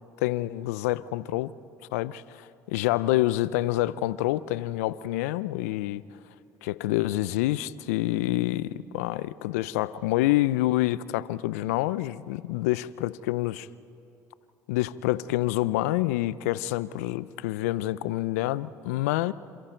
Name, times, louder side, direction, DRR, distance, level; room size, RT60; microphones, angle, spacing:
voice 1, 0.2-1.5 1.9-6.0 6.6-13.7 14.7-19.3, left 16 dB, 80° left, 0.6 m, -27 dB
28.5 x 27.5 x 4.5 m
hypercardioid pair, 70°, 8 cm